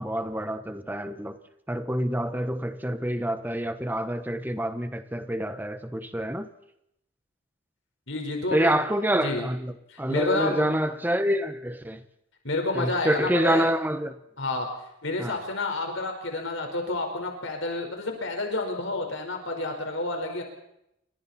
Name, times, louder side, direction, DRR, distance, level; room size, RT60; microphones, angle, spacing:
voice 1, 0.0-1.4 1.7-6.5 8.5-9.7 10.0-12.0 12.7-14.1 15.2-15.4, right 1 dB, 10° right, 1.2 m, -27 dB
voice 2, 8.1-8.7 9.2-9.5 9.9-10.7 12.4-13.7 14.4-14.7 15.0-20.4, left 2 dB, 70° left, 4.8 m, -29 dB
29.0 x 24.5 x 4.4 m
head